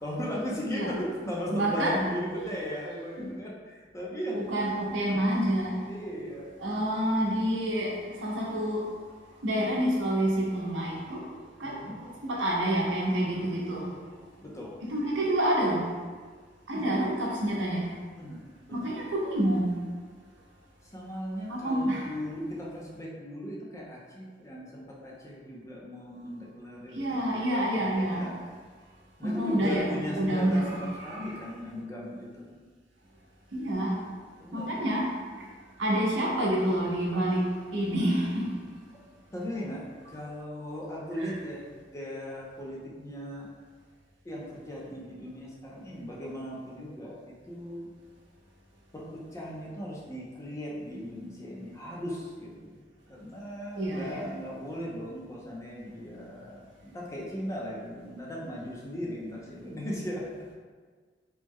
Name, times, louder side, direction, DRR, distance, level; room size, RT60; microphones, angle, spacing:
voice 1, 0.0-4.5 5.9-6.5 11.6-11.9 14.4-14.8 16.7-16.8 18.2-18.4 18.7-18.9 20.9-28.4 29.2-30.8 31.0-32.5 34.4-34.7 39.3-43.5 44.2-47.9 48.9-52.8 53.1-60.3, equal, 15° left, -4 dB, 0.5 m, -37 dB
voice 2, 1.5-2.0 2.3-2.4 2.8-3.3 4.5-5.8 6.6-8.9 9.4-11.3 11.6-13.9 14.8-15.9 16.7-17.9 18.7-19.8 21.5-22.1 26.9-28.3 29.2-31.4 33.5-34.0 34.5-35.1 35.8-38.5 41.2-41.3 53.7-54.3, right 1 dB, 75° right, -3 dB, 0.7 m, -28 dB
3.0 x 2.1 x 3.5 m, 1.5 s
head